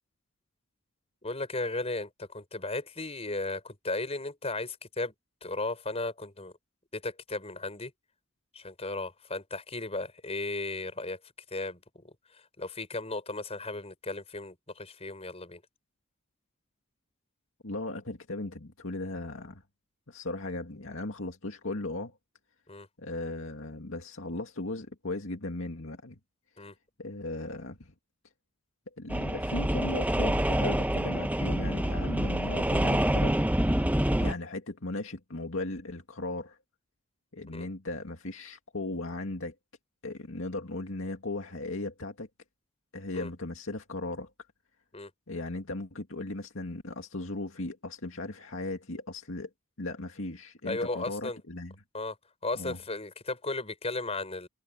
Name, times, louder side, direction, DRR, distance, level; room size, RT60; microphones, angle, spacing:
voice 1, 1.2-5.1 5.4-6.5 6.9-7.9 8.5-11.2 11.5-15.6 22.7-22.9 26.6-26.7 34.2-34.3 37.5-37.7 43.1-43.3 44.9-45.1 50.7-51.4 51.9-52.2 52.4-54.5, left 2 dB, 30° left, 5.7 m, -35 dB
voice 2, 17.6-19.6 20.1-22.2 23.0-26.2 27.0-27.9 29.0-33.4 34.2-36.6 37.3-39.5 40.0-42.3 42.9-44.3 45.3-49.5 49.8-51.7 52.5-52.8, left 2 dB, 70° left, 2.3 m, -37 dB
sound 1, 29.1-34.3, right 1 dB, 5° right, 0.9 m, -27 dB
head